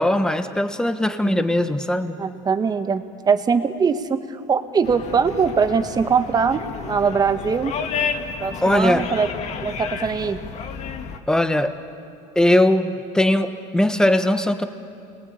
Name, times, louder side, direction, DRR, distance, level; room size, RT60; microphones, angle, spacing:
voice 1, 0.0-2.2 8.6-9.1 11.3-11.7 12.3-14.7, left 1 dB, 5° left, 9 dB, 1.3 m, -20 dB
voice 2, 1.1-1.5 2.2-7.8 8.4-9.3 9.6-10.4, right 5 dB, 25° right, 9 dB, 1.3 m, -22 dB
sound 1, 4.8-11.2, left 6 dB, 50° left, 1.7 m, -31 dB
28.0 x 20.5 x 8.7 m, 2.5 s
supercardioid pair, 110°, 14 cm